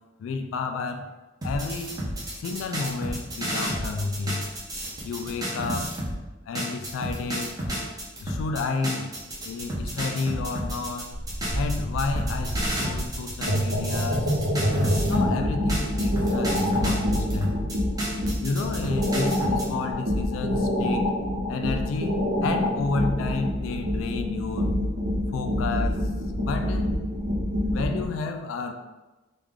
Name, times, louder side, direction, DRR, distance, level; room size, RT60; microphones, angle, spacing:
voice 1, 0.2-1.1 1.4-2.0 2.3-4.4 5.0-5.9 6.5-7.5 8.2-11.1 11.5-14.3 15.1-17.5 18.4-21.1 21.5-24.7 25.3-26.9 27.7-28.7, left 4 dB, 80° left, 6 dB, 0.3 m, -31 dB
sound 1, 1.4-6.2 6.6-15.3 15.7-19.7, equal, 20° right, 0.7 m, -31 dB
sound 2, 11.1-28.1, equal, 70° right, 0.7 m, -26 dB
3.1 x 2.4 x 3.5 m, 1.1 s
head